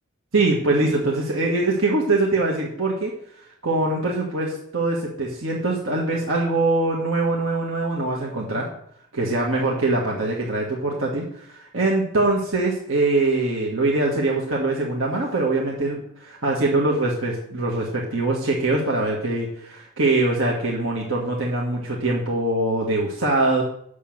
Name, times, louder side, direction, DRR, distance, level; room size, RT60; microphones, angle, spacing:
voice 1, 0.3-3.1 3.6-8.7 9.1-23.6, right 2 dB, 65° right, -2 dB, 1.6 m, -23 dB
8.5 x 6.5 x 7.3 m, 0.69 s
head